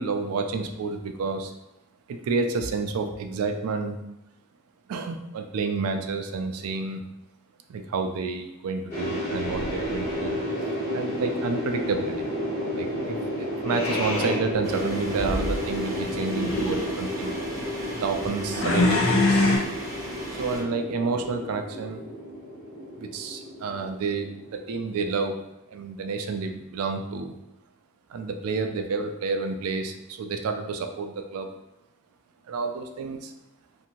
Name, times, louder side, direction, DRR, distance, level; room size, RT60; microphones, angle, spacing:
voice 1, 0.0-1.5 2.1-4.0 4.9-7.0 7.7-10.4 10.9-12.3 12.7-17.4 18.0-19.7 20.3-22.0 23.0-27.3 28.1-31.5 32.5-33.3, right 4 dB, 80° right, 6 dB, 0.3 m, -30 dB
sound 1, 8.9-25.0, equal, 35° left, 1.1 m, -32 dB
sound 2, 9.4-10.3 13.7-14.4 15.1-15.6 16.2-16.9 18.5-19.6, left 2 dB, 65° left, 0.6 m, -25 dB
sound 3, 14.6-20.6, equal, 15° right, 0.5 m, -38 dB
2.6 x 2.5 x 2.9 m, 0.88 s
head